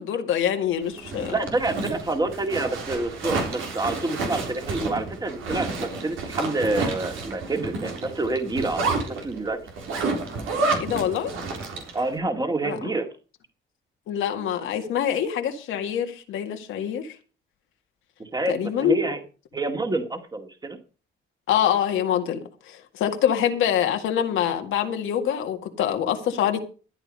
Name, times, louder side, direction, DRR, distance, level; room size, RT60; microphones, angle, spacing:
voice 1, 0.0-1.3 10.8-11.3 12.6-12.9 14.1-17.2 18.5-19.0 21.5-26.6, left 9 dB, 85° left, 1.9 m, -25 dB
Zipper (clothing), 0.8-12.0, right 3 dB, 90° right, 3.6 m, -30 dB
voice 2, 1.3-9.6 11.9-13.1 18.2-19.2 19.5-20.8, right 2 dB, 20° right, 2.2 m, -28 dB
13.5 x 9.1 x 5.3 m
cardioid pair, 90°, 20 cm